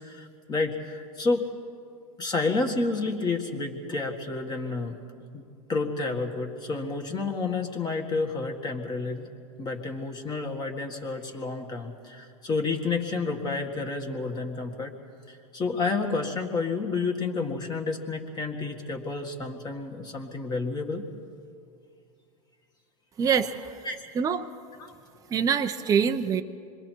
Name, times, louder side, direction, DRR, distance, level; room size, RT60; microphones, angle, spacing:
voice 1, 0.0-1.5 2.2-5.0 5.3-5.4 5.7-9.3 9.6-14.9 15.3-21.0 23.8-24.0 24.8-24.9, left 3 dB, 20° left, 3 dB, 1.8 m, -30 dB
voice 2, 23.2-23.9 24.1-24.5 25.3-26.4, right 7 dB, 20° right, 7 dB, 0.7 m, -25 dB
26.5 x 22.0 x 4.6 m, 2.4 s
hypercardioid pair, 115°, 19 cm